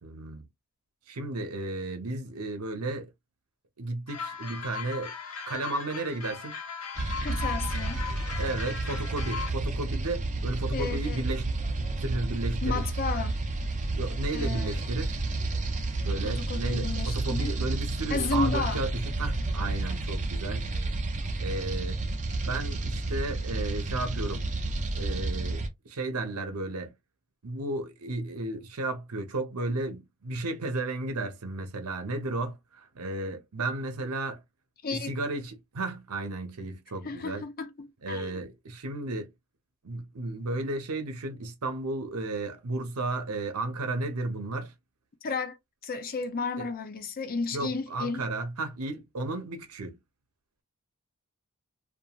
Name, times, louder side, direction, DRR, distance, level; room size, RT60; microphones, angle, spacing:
voice 1, 0.0-0.5 1.1-3.1 3.8-5.1 5.5-6.6 8.4-11.5 12.0-12.8 13.9-15.2 16.0-20.7 21.4-22.0 22.4-24.5 24.9-26.9 27.4-34.4 34.9-37.4 38.0-39.3 39.8-44.7 46.6-46.7 47.5-50.0, right 2 dB, 80° right, 0.8 m, -33 dB
sound 1, 4.1-9.5, left 6 dB, 80° left, 0.9 m, -38 dB
sound 2, 7.0-25.7, right 2 dB, 35° right, 0.6 m, -31 dB
voice 2, 7.2-8.0 10.7-11.2 12.6-13.4 14.3-14.8 16.2-17.5 18.1-18.8 34.8-35.2 37.0-38.4 45.2-45.6 45.8-48.3, left 4 dB, 40° left, 0.5 m, -33 dB
2.9 x 2.4 x 2.3 m
head